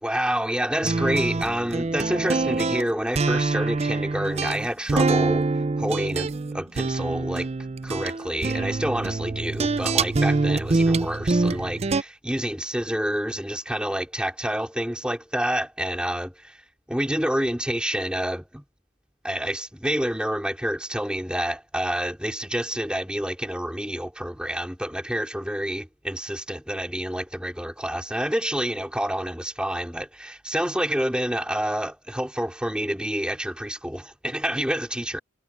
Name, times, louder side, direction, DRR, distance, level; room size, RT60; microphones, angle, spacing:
voice 1, 0.0-5.5 5.8-7.5 7.8-16.6 16.9-18.6 19.2-35.2, equal, 5° right, 3.9 m, -28 dB
sound 1, 0.8-12.0, right 3 dB, 30° right, 0.4 m, -25 dB
head